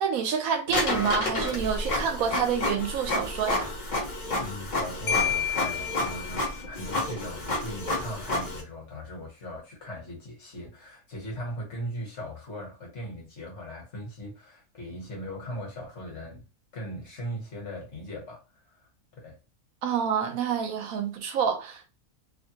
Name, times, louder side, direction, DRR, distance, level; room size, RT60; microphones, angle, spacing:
voice 1, 0.0-3.7 19.8-22.0, right 7 dB, 70° right, 1.1 m, -28 dB
Printer, 0.7-8.6, left 2 dB, 35° left, 0.8 m, -30 dB
voice 2, 4.4-16.4 16.7-18.4 18.7-18.9 19.1-19.4, equal, 55° left, 1.4 m, -39 dB
Marimba xylophone, 5.1-6.8, left 9 dB, 85° left, 1.1 m, -30 dB
2.9 x 2.2 x 2.8 m
omnidirectional pair, 1.6 m